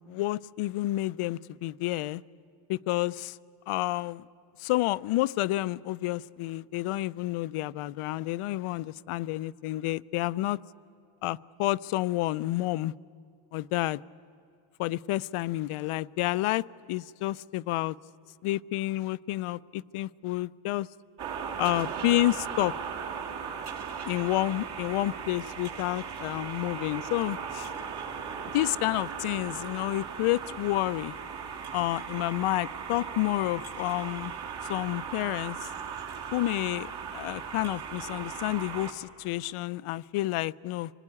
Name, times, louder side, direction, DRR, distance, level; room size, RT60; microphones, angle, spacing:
voice 1, 0.0-2.2 2.7-3.4 3.7-4.2 4.6-10.6 11.2-12.9 13.5-14.0 14.8-18.0 18.4-20.9 21.6-22.7 24.1-27.7 28.5-31.1 31.7-34.3 34.7-35.7 36.3-40.9, left 16 dB, 85° left, 18 dB, 0.6 m, -29 dB
sound 1, 21.2-38.9, right 6 dB, 50° right, 2.2 m, -37 dB
26.0 x 19.0 x 9.8 m, 2.5 s
cardioid pair, 165°, 50 cm